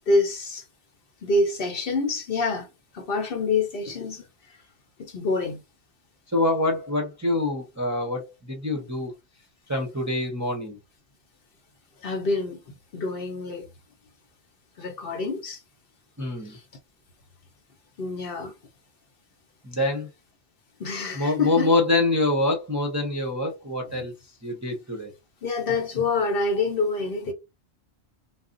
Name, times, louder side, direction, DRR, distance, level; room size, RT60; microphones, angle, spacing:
voice 1, 0.1-0.6 1.2-2.7 2.9-4.2 5.0-5.6 12.0-13.7 14.8-15.6 16.5-16.6 18.0-18.5 20.8-21.7 25.4-27.3, left 3 dB, 55° left, 0.8 m, -26 dB
voice 2, 6.3-9.1 9.7-10.8 16.2-16.6 19.6-20.1 21.1-24.1 24.4-25.1, left 2 dB, 20° right, 0.5 m, -25 dB
2.5 x 2.0 x 3.7 m
omnidirectional pair, 1.2 m